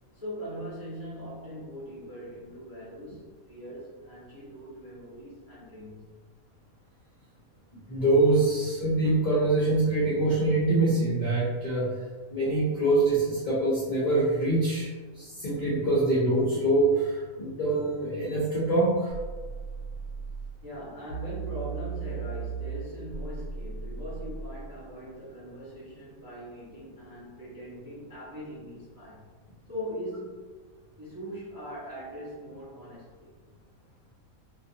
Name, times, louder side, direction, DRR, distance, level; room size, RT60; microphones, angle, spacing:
voice 1, 0.1-6.2 20.6-29.3 29.7-30.4 31.0-33.3, equal, 25° right, -9 dB, 0.5 m, -41 dB
voice 2, 7.9-11.9 12.3-19.1, right 2 dB, 60° left, -8 dB, 0.5 m, -24 dB
sound 1, 19.1-20.6 21.1-24.6, right 5 dB, 75° right, 1.2 m, -36 dB
2.4 x 2.3 x 2.6 m, 1.4 s
omnidirectional pair, 1.5 m